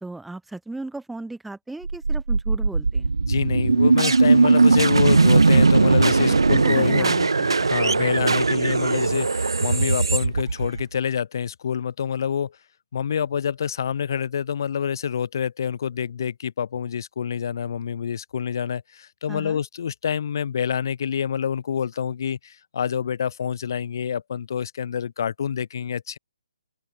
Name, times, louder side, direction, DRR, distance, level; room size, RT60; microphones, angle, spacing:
voice 1, 0.0-3.1 6.3-8.1 19.3-19.6, right 2 dB, 5° right, 1.4 m, -37 dB
sound 1, 1.8-11.0, right 3 dB, 80° right, 2.0 m, -19 dB
voice 2, 3.3-7.1 7.7-12.5 12.9-26.2, left 8 dB, 50° left, 3.7 m, -27 dB
open air
hypercardioid pair, 150°, 3 cm